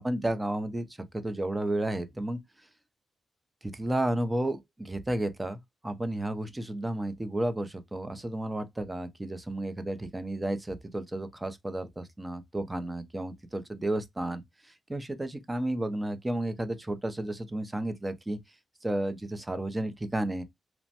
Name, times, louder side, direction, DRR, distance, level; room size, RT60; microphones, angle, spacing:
voice 1, 0.0-2.4 3.6-18.4 18.8-20.4, right 1 dB, 15° right, 0.5 m, -32 dB
3.0 x 2.1 x 2.8 m
cardioid pair, 90°, 0 cm